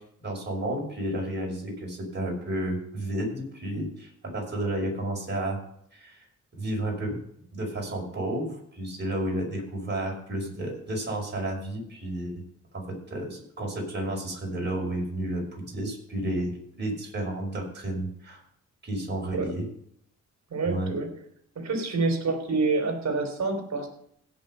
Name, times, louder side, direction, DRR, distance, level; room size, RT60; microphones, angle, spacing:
voice 1, 0.2-5.6 5.9-6.3 6.5-7.1 7.5-12.4 12.7-12.8 13.1-18.4 18.8-19.6 20.7-20.9, right 1 dB, 35° right, -1 dB, 5.8 m, -31 dB
voice 2, 20.5-21.1 21.6-23.9, right 3 dB, 60° right, 5 dB, 3.4 m, -27 dB
16.5 x 5.8 x 5.6 m, 0.70 s
cardioid pair, 100°, 31 cm